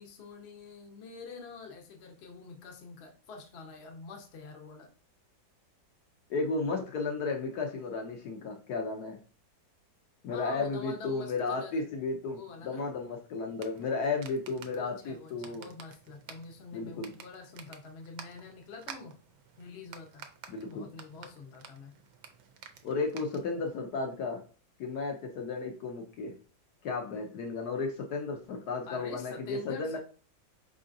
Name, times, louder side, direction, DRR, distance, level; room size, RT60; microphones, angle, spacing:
voice 1, 0.0-4.9 10.3-11.8 12.3-12.8 14.7-19.2 19.6-20.3 20.6-22.0 28.9-30.0, left 4 dB, 50° left, 2 dB, 0.8 m, -46 dB
voice 2, 6.3-9.2 10.2-15.7 16.7-17.1 20.5-20.9 22.8-24.5 24.8-26.4 26.8-30.0, left 4 dB, 65° left, 2 dB, 1.1 m, -34 dB
sound 1, 13.5-23.7, right 7 dB, 70° right, 1.1 m, -51 dB
4.8 x 3.7 x 2.6 m, 0.36 s
omnidirectional pair, 2.0 m